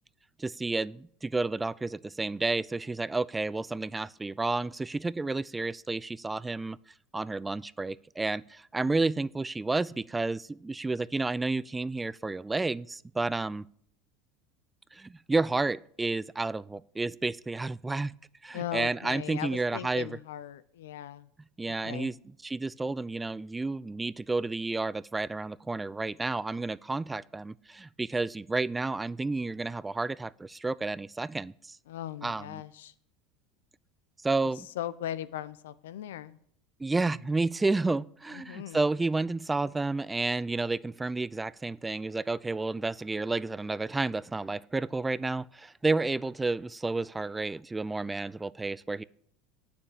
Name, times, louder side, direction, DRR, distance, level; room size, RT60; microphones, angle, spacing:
voice 1, 0.4-6.8 7.1-13.7 14.9-18.1 18.4-20.2 21.6-31.8 32.2-32.6 34.2-34.7 36.8-49.0, right 3 dB, 15° right, 21 dB, 0.3 m, -31 dB
voice 2, 18.5-21.3 21.8-22.1 31.9-32.9 34.8-36.4 38.3-38.8, left 12 dB, 75° left, 16 dB, 0.6 m, -38 dB
8.9 x 7.1 x 8.6 m, 0.64 s
hypercardioid pair, 80°, 0 cm